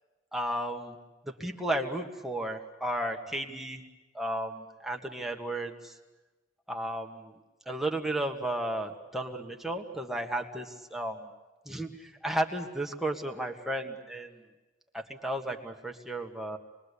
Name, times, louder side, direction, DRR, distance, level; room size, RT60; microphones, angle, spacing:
voice 1, 0.3-0.9 1.4-3.8 4.1-5.9 6.7-7.3 7.7-11.2 11.6-14.3 14.9-16.6, right 1 dB, ahead, 1 dB, 1.8 m, -33 dB
27.5 x 21.5 x 8.4 m, 1.1 s
head